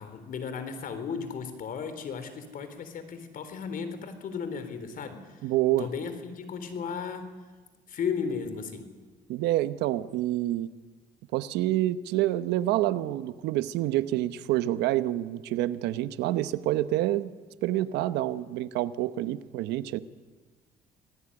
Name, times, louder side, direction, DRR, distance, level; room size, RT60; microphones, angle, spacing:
voice 1, 0.0-5.5 5.8-7.3 7.9-8.9, left 6 dB, 55° left, 10 dB, 3.9 m, -35 dB
voice 2, 5.4-5.9 9.3-10.7 11.3-17.3 17.6-20.0, right 14 dB, 90° right, 13 dB, 1.0 m, -27 dB
26.0 x 18.5 x 9.9 m, 1.4 s
cardioid pair, 110°, 17 cm